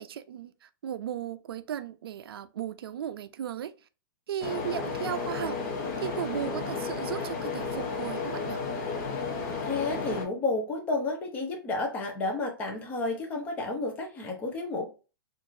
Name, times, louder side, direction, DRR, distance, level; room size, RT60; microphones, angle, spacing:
voice 1, 0.0-3.7 4.3-8.6, right 10 dB, 80° right, 0.4 m, -36 dB
sound 1, 4.4-10.3, left 4 dB, 40° left, 1.0 m, -33 dB
voice 2, 9.6-14.9, left 3 dB, 10° left, 0.6 m, -31 dB
4.6 x 2.5 x 2.6 m
hypercardioid pair, 175°, 12 cm